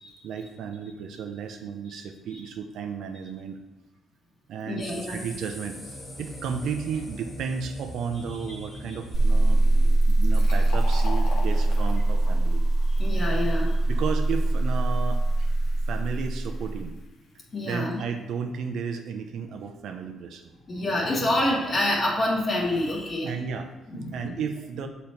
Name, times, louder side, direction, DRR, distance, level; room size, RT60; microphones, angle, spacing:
voice 1, 0.2-3.6 4.5-9.6 10.1-12.6 13.9-15.5 15.9-17.0 17.6-20.5 23.2-24.9, right 6 dB, 75° right, 7 dB, 0.7 m, -33 dB
voice 2, 4.7-5.2 8.5-8.6 13.0-13.7 17.5-18.0 20.7-23.4 23.9-24.2, left 1 dB, 40° left, -3 dB, 1.8 m, -27 dB
sound 1, 4.8-10.0, left 1 dB, 25° left, 1.8 m, -41 dB
sound 2, 9.1-16.9, right 2 dB, 55° right, 1.2 m, -22 dB
Fill (with liquid), 9.9-17.3, left 3 dB, 85° left, 1.3 m, -44 dB
6.9 x 4.1 x 4.4 m, 1.0 s
cardioid pair, 90°, 0 cm